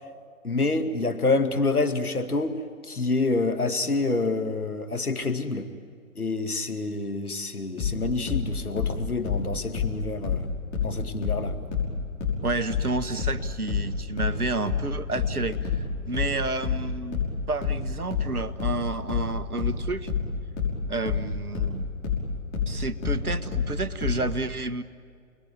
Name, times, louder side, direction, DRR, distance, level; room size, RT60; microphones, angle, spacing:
voice 1, 0.4-5.7 6.2-10.5 10.8-11.6, left 3 dB, 85° left, 7 dB, 2.3 m, -27 dB
sound 1, 7.8-11.0 11.2-24.3, left 6 dB, 25° left, 5.9 m, -28 dB
voice 2, 12.4-17.2 17.5-20.1 20.9-21.8 22.7-24.8, right 3 dB, 85° right, 10 dB, 1.5 m, -30 dB
30.0 x 21.0 x 9.3 m, 2.2 s
figure-of-eight pair, 130°, 43 cm